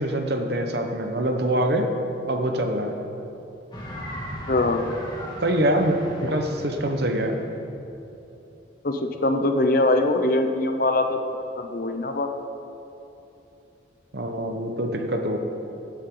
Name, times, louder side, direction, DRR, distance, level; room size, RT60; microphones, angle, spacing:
voice 1, 0.0-1.9 2.3-3.0 5.4-7.4 14.1-15.4, right 1 dB, 60° right, 4 dB, 1.2 m, -24 dB
sound 1, 3.7-8.6, equal, 25° left, 1.9 m, -38 dB
voice 2, 4.5-4.8 8.8-11.2 11.6-12.4, left 2 dB, 50° left, 5 dB, 0.8 m, -22 dB
16.5 x 10.5 x 3.9 m, 2.9 s
head